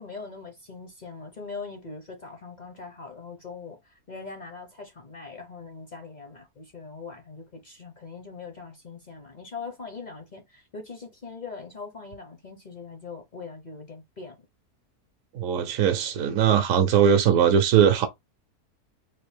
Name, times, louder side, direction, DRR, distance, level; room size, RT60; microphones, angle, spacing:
voice 1, 0.0-14.4, left 4 dB, 45° left, 0.5 m, -41 dB
voice 2, 15.3-18.1, right 8 dB, 70° right, 0.9 m, -20 dB
3.4 x 2.5 x 3.2 m
omnidirectional pair, 1.6 m